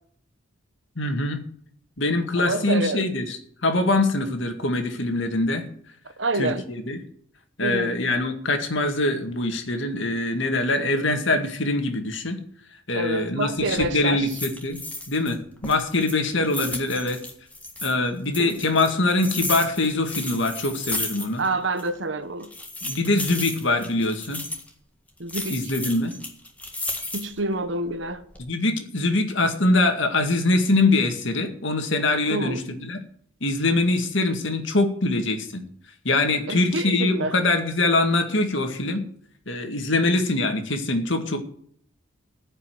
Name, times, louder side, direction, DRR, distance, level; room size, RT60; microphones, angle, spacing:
voice 1, 1.0-1.4 2.0-3.4 3.6-5.6 6.3-7.0 7.6-12.4 12.9-14.8 15.1-17.2 17.8-21.4 22.8-24.4 25.5-26.1 28.4-33.0 33.4-35.6 36.0-39.0 39.5-41.4, left 2 dB, 65° left, 2.1 m, -23 dB
voice 2, 2.4-3.1 6.2-6.6 7.6-8.0 12.9-14.3 18.4-18.5 21.4-22.5 25.2-25.6 27.1-28.2 32.3-32.6 36.5-37.3, right 2 dB, 60° right, 1.1 m, -27 dB
sound 1, 13.6-13.9 14.3-15.3 15.6-17.9 18.3-21.5 21.8-21.9 22.4-24.7 25.3-27.4 27.9-28.4, left 2 dB, 5° left, 1.8 m, -33 dB
15.5 x 5.6 x 9.5 m
head